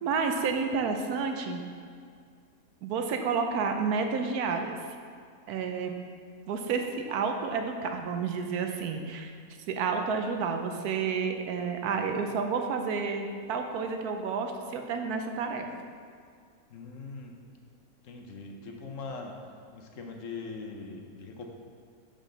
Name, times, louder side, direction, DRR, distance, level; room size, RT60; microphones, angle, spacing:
voice 1, 0.0-1.6 2.8-4.8 5.5-5.9 6.5-9.3 9.7-15.7, right 5 dB, 80° right, 5 dB, 1.2 m, -30 dB
voice 2, 16.7-17.4 18.0-21.4, left 4 dB, 60° left, 2 dB, 1.1 m, -41 dB
7.5 x 5.1 x 3.8 m, 2.1 s
omnidirectional pair, 1.6 m